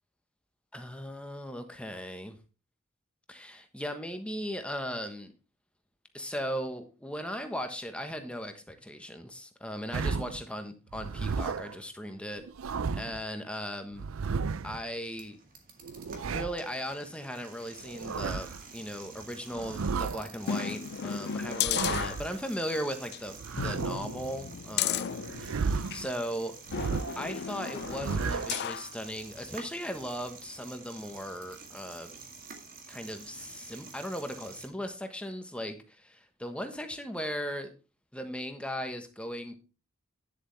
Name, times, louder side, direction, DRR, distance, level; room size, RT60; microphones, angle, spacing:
voice 1, 0.7-2.4 3.3-5.3 6.1-12.4 12.9-14.1 14.6-15.4 16.3-26.6 27.2-32.1 32.9-37.7 38.1-39.6, equal, 5° left, 7 dB, 1.3 m, -37 dB
sound 1, 9.9-10.5 10.9-11.8 12.4-13.2 13.9-14.8 15.8-16.7 17.8-18.6 19.5-20.3 21.4-22.3 23.4-24.2 25.2-26.1 26.7-27.3 27.8-28.6, right 5 dB, 85° right, 0.5 m, -33 dB
sound 2, 14.9-34.7, right 4 dB, 45° right, 2.0 m, -49 dB
sound 3, 20.4-22.7 23.1-23.2 23.6-26.1 26.7-28.9 29.4-29.5, left 8 dB, 55° left, 0.4 m, -34 dB
10.0 x 7.8 x 3.4 m, 0.32 s
head